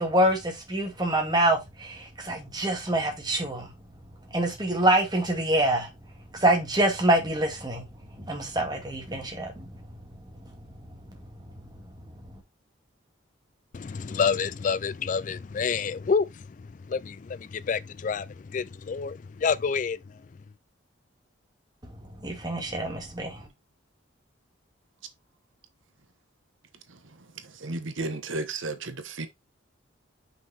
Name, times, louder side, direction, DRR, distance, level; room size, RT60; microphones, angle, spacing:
voice 1, 0.0-3.7 4.3-5.9 6.3-7.9 8.1-9.8 10.4-10.5 10.9-11.0 11.5-11.6 22.2-23.5, right 1 dB, 20° right, 2.1 m, -26 dB
voice 2, 13.7-16.5 16.9-20.0, left 5 dB, 40° left, 0.3 m, -28 dB
voice 3, 26.9-29.3, right 2 dB, 80° right, 1.3 m, -34 dB
5.8 x 5.6 x 4.3 m
head